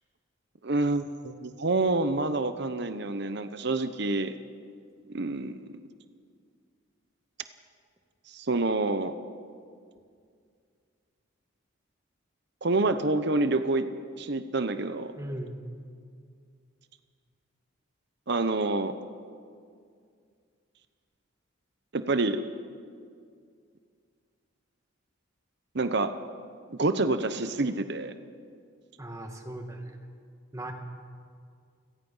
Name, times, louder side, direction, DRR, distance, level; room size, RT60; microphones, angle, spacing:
voice 1, 0.6-4.3 5.1-5.6 8.3-9.2 12.6-13.9 14.2-15.1 18.3-19.0 21.9-22.4 25.7-26.1 26.7-28.1, right 2 dB, 55° right, 10 dB, 0.9 m, -27 dB
voice 2, 15.2-15.6 29.0-30.0 30.5-30.7, right 1 dB, 15° right, 3 dB, 2.0 m, -38 dB
29.0 x 17.5 x 5.6 m, 2.2 s
head